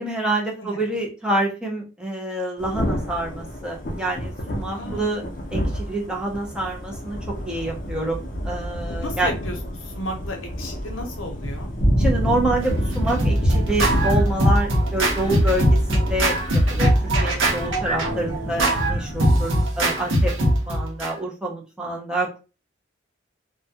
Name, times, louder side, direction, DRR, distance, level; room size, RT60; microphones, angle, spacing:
voice 1, 0.0-5.2 5.5-7.2 7.5-9.3 12.0-16.9 17.2-22.4, right 1 dB, 5° right, -2 dB, 0.5 m, -27 dB
Thunder / Rain, 2.6-19.6, equal, 40° left, 0.5 m, -28 dB
voice 2, 4.7-5.1 9.0-9.5 9.9-11.7 19.4-20.0, left 1 dB, 80° left, 3 dB, 0.7 m, -34 dB
Scratching (performance technique), 12.6-21.1, right 1 dB, 75° right, 0.8 m, -21 dB
2.2 x 2.2 x 2.7 m, 0.31 s
head